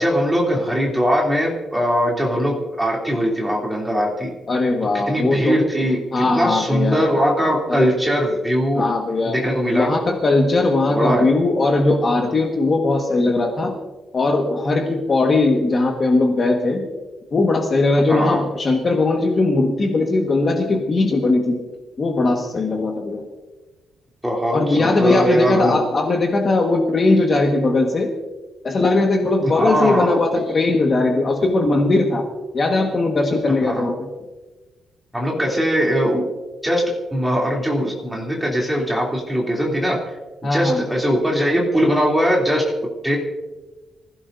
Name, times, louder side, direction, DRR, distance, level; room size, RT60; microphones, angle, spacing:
voice 1, 0.0-4.3 5.1-8.8 9.3-9.9 10.9-11.2 18.1-18.4 24.2-25.8 29.5-30.2 33.6-33.9 35.1-36.2 36.6-36.8 37.1-40.0 40.5-42.6 43.0-43.2, equal, 5° right, -2 dB, 3.0 m, -20 dB
voice 2, 4.5-5.6 6.1-7.0 7.7-7.9 8.7-9.4 9.7-13.8 14.1-16.9 17.3-21.6 22.0-23.2 24.5-28.1 28.6-32.3 32.5-34.1 40.4-40.9, left 2 dB, 30° left, 1 dB, 1.6 m, -19 dB
25.5 x 16.0 x 2.7 m, 1.2 s
cardioid pair, 170°, 0 cm